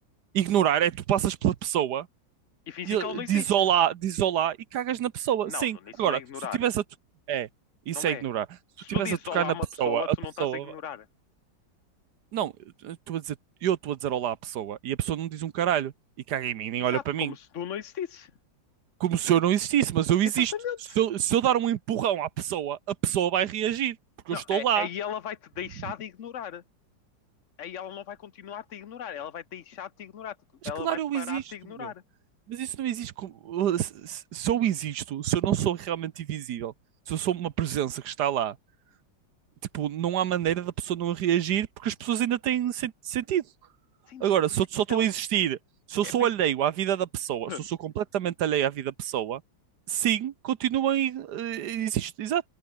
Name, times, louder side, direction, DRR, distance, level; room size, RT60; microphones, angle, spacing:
voice 1, 0.3-2.1 2.9-6.2 6.6-6.8 7.3-7.5 7.9-8.5 8.9-10.7 12.3-12.5 12.8-13.4 13.6-15.9 16.3-17.3 19.0-20.5 21.0-24.0 24.3-24.9 30.8-31.4 31.8-31.9 32.5-36.7 37.1-38.5 39.7-43.4 44.2-45.6 45.9-49.4 49.9-52.4, right 10 dB, 65° right, 1.4 m, -27 dB
voice 2, 2.7-3.5 5.5-6.6 7.9-8.2 8.8-11.1 16.9-18.3 20.3-20.8 24.3-26.6 27.6-30.4 30.6-32.0 44.1-44.3 44.9-45.1 46.0-46.3 47.4-47.7, left 9 dB, 50° left, 1.0 m, -37 dB
open air
omnidirectional pair, 2.0 m